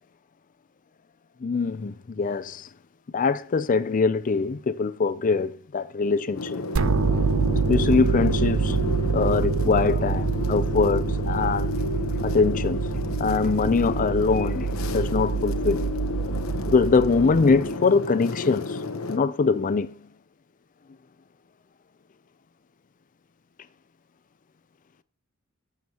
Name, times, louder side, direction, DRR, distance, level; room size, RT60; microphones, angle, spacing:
voice 1, 1.4-2.7 3.1-6.6 7.7-8.8 9.1-11.7 12.2-12.9 13.2-15.8 16.7-19.9, left 4 dB, 40° left, 0.4 m, -23 dB
sound 1, 6.3-19.2, left 2 dB, 85° left, 1.0 m, -32 dB
sound 2, 6.8-17.7, right 5 dB, 75° right, 0.6 m, -26 dB
14.0 x 7.3 x 2.9 m
head